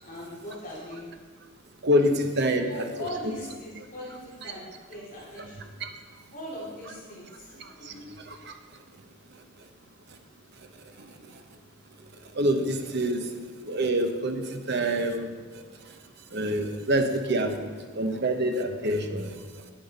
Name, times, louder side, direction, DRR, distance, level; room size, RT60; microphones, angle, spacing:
voice 1, 0.0-1.0 2.6-5.7 6.3-8.2, left 1 dB, 40° left, -6 dB, 2.6 m, -40 dB
voice 2, 1.8-2.8 12.4-13.2 13.7-15.3 16.3-17.5 18.0-19.3, right 1 dB, 55° right, 6 dB, 0.9 m, -25 dB
9.9 x 8.8 x 4.1 m, 1.5 s
head